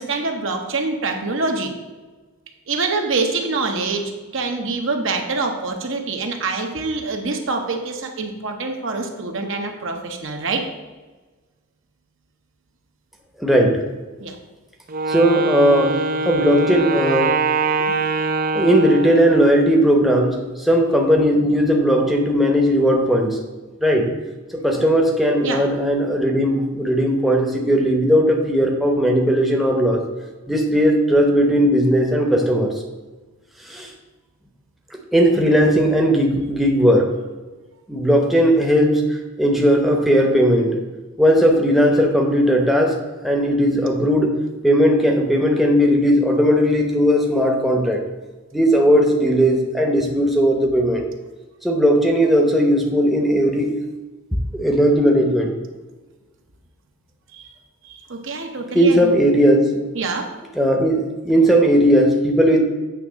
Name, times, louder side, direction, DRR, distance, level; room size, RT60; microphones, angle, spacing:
voice 1, 0.0-1.7 2.7-10.6 14.2-14.4 25.4-25.6 57.3-57.5 57.8-59.2 59.9-60.3, right 3 dB, 65° right, 3 dB, 1.0 m, -25 dB
voice 2, 13.4-13.8 15.1-16.0 16.2-17.3 18.5-23.4 23.8-24.1 24.5-30.0 30.5-32.7 33.7-33.9 35.1-37.1 37.9-39.0 39.4-40.8 41.2-43.0 43.2-44.3 44.6-48.0 48.5-51.0 51.6-53.7 54.5-55.5 58.7-59.8 60.6-62.6, equal, ahead, 0 dB, 0.8 m, -17 dB
Wind instrument woodwind instrument, 14.9-19.7, right 3 dB, 40° right, 0.5 m, -23 dB
8.4 x 3.6 x 6.2 m, 1.2 s
head